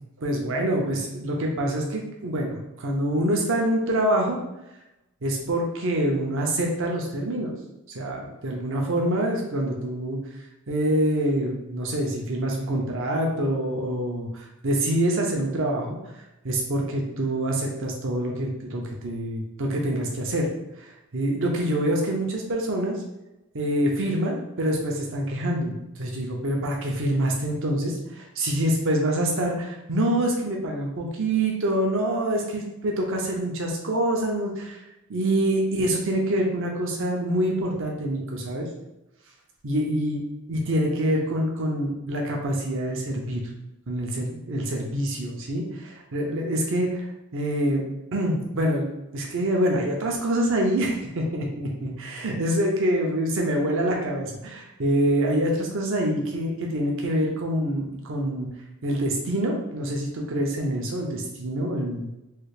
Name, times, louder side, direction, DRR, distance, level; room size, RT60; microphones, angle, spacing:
voice 1, 0.2-4.4 5.2-7.5 7.9-10.2 10.7-16.0 16.4-20.5 21.1-23.0 23.5-34.8 35.1-38.7 39.6-40.2 40.5-43.4 43.9-47.0 47.3-47.8 48.1-48.9 49.1-58.5 58.8-62.1, right 1 dB, 65° right, 0 dB, 0.7 m, -26 dB
3.3 x 2.4 x 3.2 m, 0.93 s
head